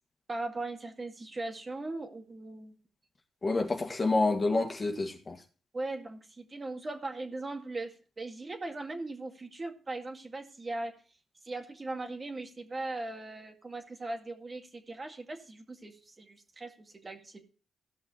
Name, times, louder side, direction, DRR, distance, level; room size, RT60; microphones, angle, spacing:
voice 1, 0.3-2.8 5.7-10.9 11.4-17.4, right 2 dB, 30° right, 2.1 m, -39 dB
voice 2, 3.4-5.4, left 3 dB, 30° left, 1.8 m, -28 dB
16.5 x 6.1 x 4.3 m
cardioid pair, 80°, 0 cm